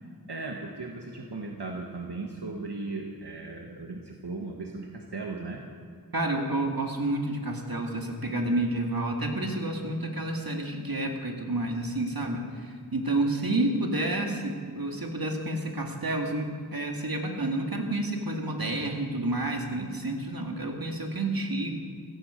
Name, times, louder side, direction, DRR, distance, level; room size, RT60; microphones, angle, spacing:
voice 1, 0.0-5.6, right 3 dB, 85° right, 1 dB, 1.4 m, -37 dB
voice 2, 6.1-21.8, right 2 dB, 60° right, 2 dB, 2.2 m, -30 dB
16.0 x 16.0 x 5.1 m, 2.2 s
wide cardioid pair, 50°, 39 cm